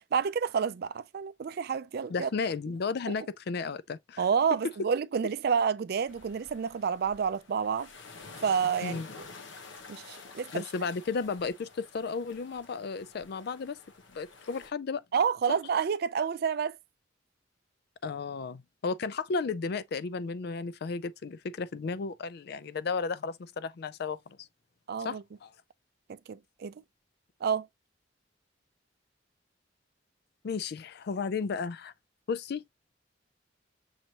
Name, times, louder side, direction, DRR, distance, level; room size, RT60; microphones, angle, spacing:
voice 1, 0.1-2.3 4.2-7.9 8.4-9.3 9.9-10.6 15.1-16.8 24.9-25.2 26.1-26.7 27.4-27.7, right 6 dB, 55° right, 0.4 m, -29 dB
voice 2, 2.1-4.2 4.6-4.7 8.8-9.1 10.5-13.8 14.1-15.0 18.0-24.5 25.0-25.5 30.4-31.9 32.3-32.6, left 4 dB, 60° left, 0.4 m, -34 dB
sound 1, 6.1-14.7, left 4 dB, 80° left, 1.0 m, -49 dB
6.3 x 2.9 x 2.8 m
head